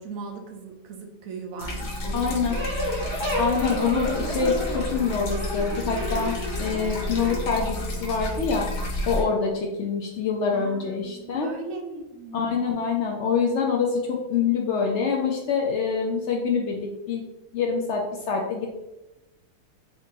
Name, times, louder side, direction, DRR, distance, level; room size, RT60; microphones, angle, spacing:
voice 1, 0.0-3.5 10.5-12.5, right 4 dB, 65° right, 4 dB, 1.0 m, -39 dB
sound 1, 1.6-9.2, left 1 dB, 90° left, 1.4 m, -31 dB
voice 2, 2.1-2.5 3.4-8.7 9.1-11.5 12.3-17.2 17.5-18.7, left 5 dB, 70° left, 0 dB, 0.6 m, -25 dB
sound 2, 2.5-7.3, equal, 25° right, 0.7 m, -32 dB
3.8 x 2.6 x 3.6 m, 0.95 s
omnidirectional pair, 1.7 m